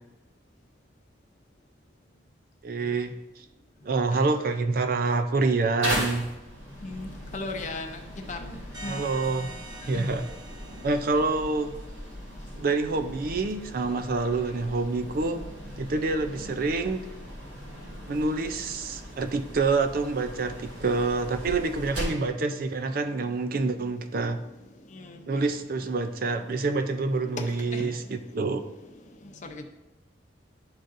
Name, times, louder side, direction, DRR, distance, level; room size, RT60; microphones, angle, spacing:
voice 1, 2.6-3.1 3.8-6.3 8.8-9.5 9.9-10.3 10.8-11.7 12.6-15.4 15.8-17.0 18.1-24.4 25.3-28.6, right 3 dB, 50° right, 8 dB, 0.4 m, -27 dB
sound 1, 5.8-22.3, equal, 85° right, 2.3 m, -38 dB
voice 2, 6.8-8.9 9.9-10.0 25.0-25.2 27.4-28.0 29.4-29.6, left 2 dB, 40° left, 4 dB, 0.6 m, -37 dB
sound 2, 8.7-12.2, right 2 dB, 20° right, 1.5 m, -45 dB
11.0 x 3.9 x 2.6 m, 0.98 s
head